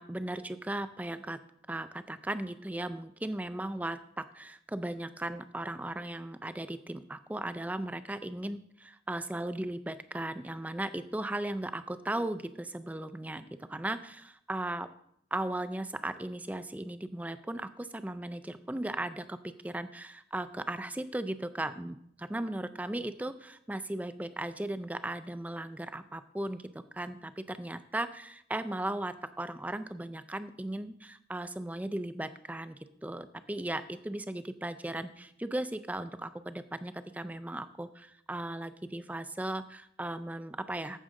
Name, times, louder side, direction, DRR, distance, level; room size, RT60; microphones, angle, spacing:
voice 1, 0.0-1.4 1.7-14.9 15.3-26.7 26.9-41.0, right 1 dB, 10° right, 12 dB, 0.4 m, -37 dB
14.5 x 6.3 x 3.7 m, 0.72 s
head